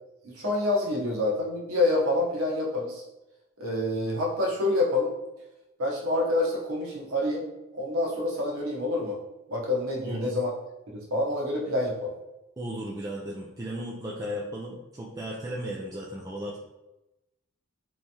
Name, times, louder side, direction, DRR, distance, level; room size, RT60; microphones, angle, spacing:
voice 1, 0.2-3.0 3.6-5.1 5.8-7.4 7.7-9.2 9.5-10.5 10.9-12.1, left 2 dB, 85° right, -3 dB, 0.9 m, -27 dB
voice 2, 10.0-10.4 12.6-16.6, equal, 15° right, -4 dB, 0.3 m, -35 dB
3.4 x 3.0 x 2.8 m, 0.98 s
head